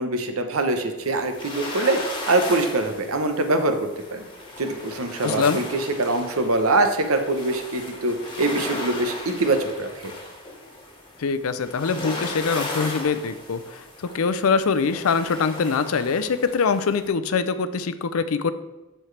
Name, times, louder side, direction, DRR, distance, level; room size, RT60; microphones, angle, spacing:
voice 1, 0.0-4.2 4.6-10.1, right 2 dB, 85° right, 6 dB, 0.9 m, -24 dB
sound 1, 1.0-17.1, left 2 dB, 25° left, 1.6 m, -36 dB
voice 2, 5.2-5.6 11.2-18.5, left 5 dB, 85° left, 12 dB, 0.5 m, -23 dB
12.0 x 4.4 x 3.3 m, 1.1 s
head